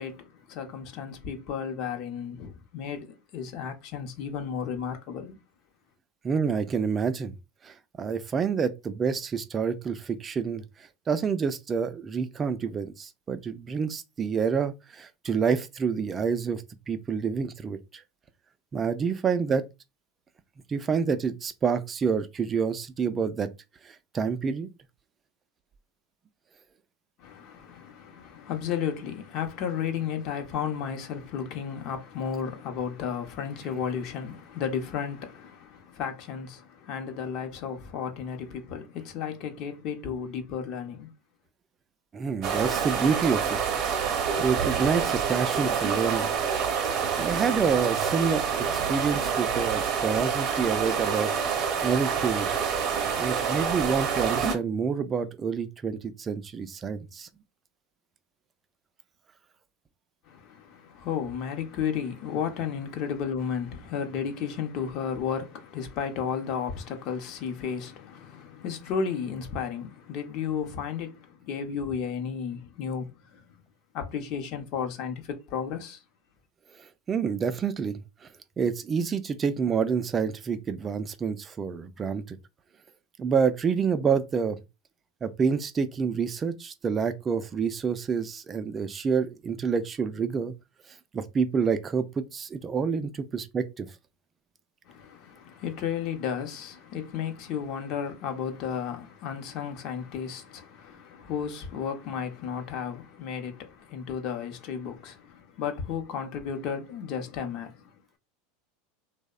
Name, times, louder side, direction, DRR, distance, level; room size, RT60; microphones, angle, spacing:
voice 1, 0.0-5.4 27.2-41.1 60.3-73.5 73.9-76.0 94.9-107.9, left 7 dB, 55° left, 0.6 m, -33 dB
voice 2, 6.2-7.3 7.6-10.6 11.1-18.0 18.7-19.6 20.7-23.5 23.8-24.7 42.1-43.6 44.4-46.3 47.2-51.3 51.8-52.5 53.2-57.3 76.8-78.3 78.6-82.4 83.2-84.6 85.2-90.5 91.1-93.9, right 6 dB, 25° right, 0.3 m, -28 dB
sound 1, 42.4-54.5, right 7 dB, 45° right, 0.7 m, -27 dB
2.7 x 2.0 x 2.3 m
supercardioid pair, 115°, 0 cm